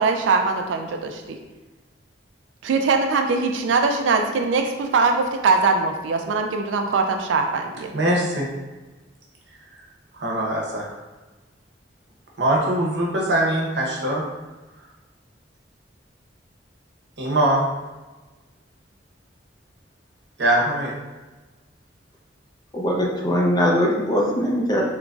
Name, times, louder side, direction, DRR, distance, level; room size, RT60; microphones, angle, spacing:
voice 1, 0.0-1.4 2.6-7.9, right 4 dB, 85° right, 4 dB, 0.3 m, -21 dB
voice 2, 7.9-8.5 10.2-10.9 12.4-14.2 17.2-17.6 20.4-20.9, right 1 dB, 70° right, -2 dB, 0.8 m, -22 dB
voice 3, 22.7-24.8, equal, 20° left, -2 dB, 0.5 m, -21 dB
3.8 x 2.9 x 2.3 m, 1.2 s
head